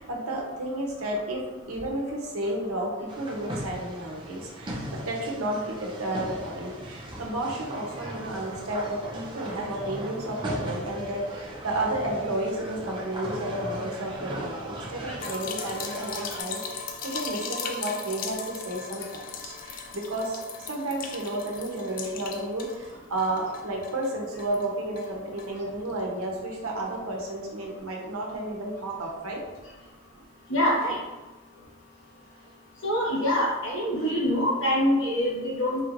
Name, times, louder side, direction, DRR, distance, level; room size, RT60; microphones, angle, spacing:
voice 1, 0.0-1.4 1.7-29.4 32.4-32.5, right 1 dB, 80° right, -1 dB, 0.9 m, -32 dB
sound 1, 3.1-16.4, right 1 dB, 20° right, 0.5 m, -38 dB
sound 2, 15.2-22.9 23.2-24.7 25.0-25.1 25.4-25.5, left 5 dB, 40° left, 0.3 m, -38 dB
voice 2, 30.5-31.0 32.8-35.8, equal, 60° left, -6 dB, 1.3 m, -25 dB
4.5 x 2.9 x 2.5 m, 1.2 s
head